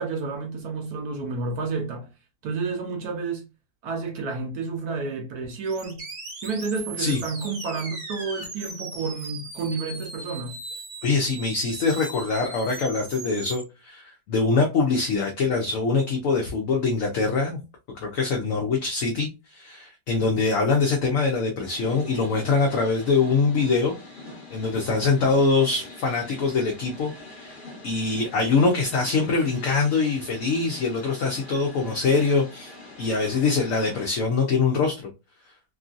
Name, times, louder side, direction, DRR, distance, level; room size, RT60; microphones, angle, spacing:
voice 1, 0.0-2.1 2.4-3.5 3.8-6.0 6.4-10.6 31.8-31.9, right 4 dB, 65° right, 1.1 m, -30 dB
sound 1, 5.6-13.6, right 3 dB, 45° right, 1.0 m, -38 dB
voice 2, 11.0-17.6 17.9-23.9 24.5-27.5 27.8-35.0, left 4 dB, 65° left, 0.8 m, -23 dB
sound 2, 21.6-34.1, left 2 dB, 35° left, 0.9 m, -44 dB
3.0 x 2.6 x 2.4 m
omnidirectional pair, 1.9 m